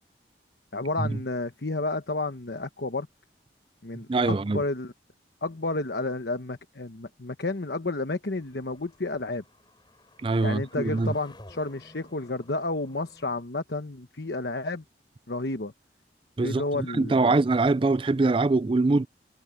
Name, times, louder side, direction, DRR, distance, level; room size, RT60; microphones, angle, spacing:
voice 1, 0.7-3.1 3.8-4.9 5.4-9.4 10.4-14.8 15.3-15.7 16.4-17.3, left 2 dB, 65° left, 1.1 m, -31 dB
voice 2, 4.1-4.6 10.2-11.1 16.4-19.1, right 3 dB, 30° right, 0.4 m, -23 dB
sound 1, 8.4-13.4, left 1 dB, 25° left, 6.0 m, -54 dB
head